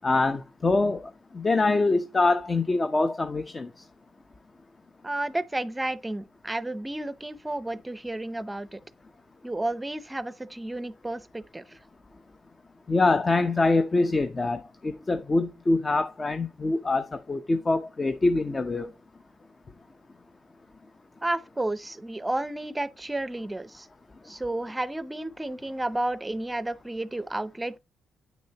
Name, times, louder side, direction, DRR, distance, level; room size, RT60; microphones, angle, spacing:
voice 1, 0.0-1.0 1.3-3.7 12.9-18.9, left 3 dB, 25° left, 0.7 m, -24 dB
voice 2, 5.0-8.8 9.4-11.8 21.2-23.9 24.2-27.8, right 1 dB, 15° right, 0.7 m, -32 dB
8.7 x 6.2 x 2.9 m
cardioid pair, 90°, 0 cm